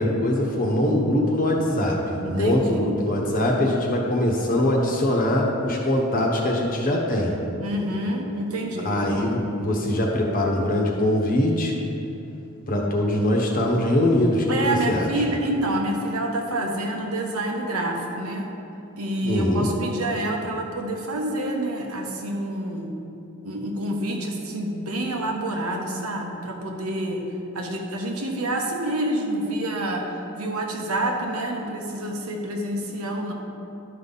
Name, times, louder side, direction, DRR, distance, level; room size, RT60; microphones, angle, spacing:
voice 1, 0.0-7.4 8.8-11.7 12.7-15.1 19.2-19.7, left 1 dB, 40° left, -1 dB, 1.1 m, -22 dB
voice 2, 2.2-2.9 7.6-8.9 14.5-18.5 19.0-22.9 23.4-27.2 27.5-30.1 30.4-33.3, right 1 dB, 85° right, 1 dB, 1.2 m, -27 dB
11.0 x 5.6 x 4.1 m, 2.8 s
head